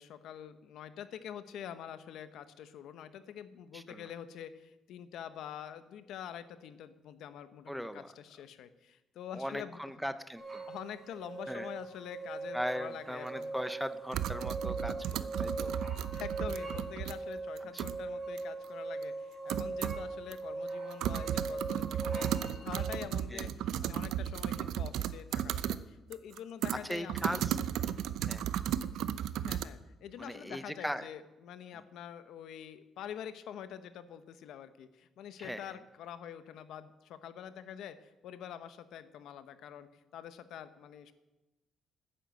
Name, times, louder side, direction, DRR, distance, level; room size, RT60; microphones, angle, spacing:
voice 1, 0.0-9.8 10.7-13.5 15.0-15.1 16.1-27.4 29.4-38.0 38.2-41.1, left 9 dB, 75° left, 11 dB, 1.0 m, -46 dB
voice 2, 3.7-4.1 7.7-8.1 9.3-10.6 11.5-11.7 12.5-15.8 17.6-17.8 23.3-23.5 26.7-27.6 28.3-28.5 30.2-31.0 31.7-31.8 35.4-35.8, equal, ahead, 11 dB, 0.6 m, -39 dB
sound 1, 10.3-23.0, right 3 dB, 20° right, 5.9 m, -40 dB
sound 2, 13.3-13.4 14.1-17.1 17.6-18.0 18.4-18.5 19.0-19.1 19.5-20.1 20.3-20.4 20.7-25.8 26.1-29.6, right 10 dB, 80° right, 0.6 m, -34 dB
12.5 x 10.0 x 7.7 m, 1.0 s
cardioid pair, 165°, 0 cm